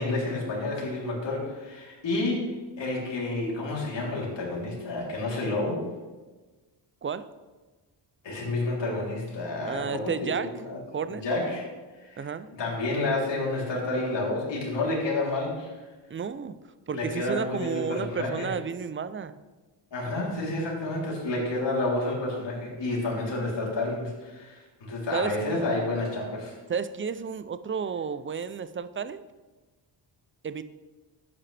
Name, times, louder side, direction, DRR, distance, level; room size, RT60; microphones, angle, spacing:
voice 1, 0.0-5.8 8.2-10.8 11.1-11.7 12.0-12.3 12.6-15.8 16.9-18.5 19.9-26.5, left 2 dB, 60° left, -4 dB, 3.6 m, -30 dB
voice 2, 9.6-10.6 10.9-11.2 12.2-12.5 16.1-16.6 16.9-19.4 25.1-25.4 26.7-29.2 30.4-30.6, right 6 dB, 25° right, 14 dB, 0.5 m, -32 dB
11.5 x 8.7 x 3.4 m, 1.3 s
cardioid pair, 85°, 48 cm